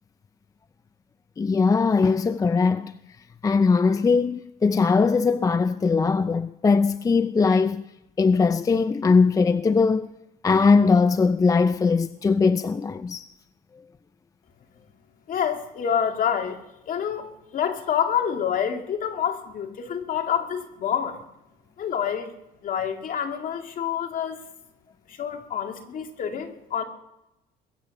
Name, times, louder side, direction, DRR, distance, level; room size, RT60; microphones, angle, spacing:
voice 1, 1.4-2.9 3.4-7.8 8.2-10.1 10.4-13.3, left 4 dB, 20° left, 0.4 m, -20 dB
voice 2, 15.3-16.6 16.9-21.2 21.8-22.3 22.6-24.4 25.1-26.8, left 8 dB, 55° left, 2.2 m, -27 dB
21.5 x 8.9 x 6.6 m
cardioid pair, 110°, 17 cm